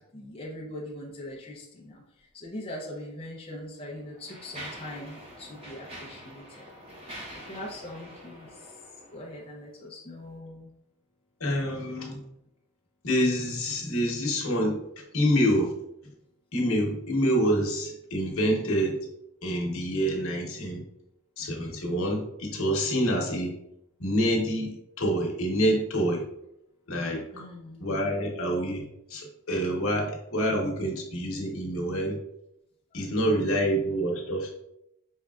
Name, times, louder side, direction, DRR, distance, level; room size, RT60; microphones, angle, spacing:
voice 1, 0.1-6.7 7.0-8.8 9.1-10.7 27.3-27.8, left 1 dB, 25° left, -3 dB, 0.5 m, -41 dB
Mechanisms, 2.9-3.0 3.8-9.5, equal, 25° right, 0.9 m, -45 dB
voice 2, 11.4-12.2 13.0-14.8 15.1-15.7 16.5-19.0 19.4-20.8 21.4-23.5 24.0-26.3 26.9-27.2 27.8-32.2 32.9-34.5, equal, 65° left, 0 dB, 1.1 m, -27 dB
5.2 x 3.3 x 2.4 m, 0.81 s
head